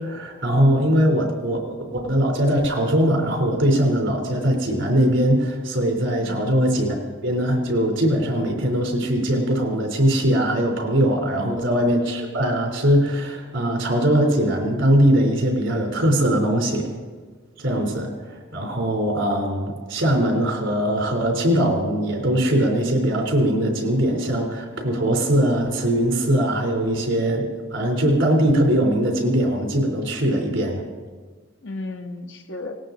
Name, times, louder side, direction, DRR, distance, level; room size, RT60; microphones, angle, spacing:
voice 1, 0.0-1.6 1.9-7.0 7.2-16.9 17.6-18.1 18.5-30.8, equal, 75° right, 2 dB, 3.6 m, -21 dB
voice 2, 0.9-1.2 6.2-6.5 11.4-11.6 31.6-32.8, left 2 dB, 70° left, 4 dB, 1.4 m, -34 dB
18.5 x 18.0 x 4.0 m, 1.5 s
head